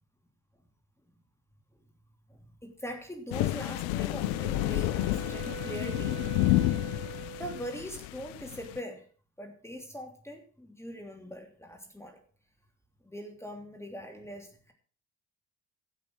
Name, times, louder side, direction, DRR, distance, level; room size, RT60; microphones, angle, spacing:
voice 1, 2.3-6.6 7.4-9.1 9.4-12.2 13.0-14.7, equal, 5° left, 3 dB, 3.0 m, -42 dB
sound 1, 3.3-8.8, left 17 dB, 75° left, 0.6 m, -30 dB
Wind instrument woodwind instrument, 3.7-7.8, right 6 dB, 35° right, 1.2 m, -43 dB
15.5 x 6.5 x 6.2 m, 0.41 s
hypercardioid pair, 50°, 38 cm